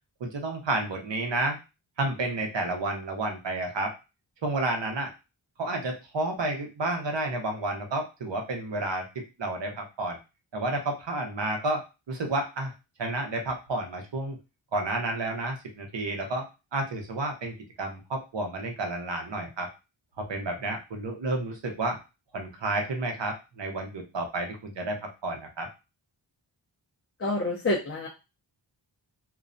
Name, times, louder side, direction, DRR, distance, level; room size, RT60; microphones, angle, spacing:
voice 1, 0.2-1.6 2.0-3.9 4.4-5.1 5.6-10.2 10.5-12.7 13.0-14.4 14.7-16.5 16.7-19.7 20.2-22.0 22.3-25.7, right 2 dB, 65° right, 3 dB, 0.8 m, -31 dB
voice 2, 27.2-28.1, left 2 dB, 30° left, -1 dB, 0.4 m, -27 dB
2.4 x 2.1 x 2.5 m, 0.28 s
cardioid pair, 40°, 48 cm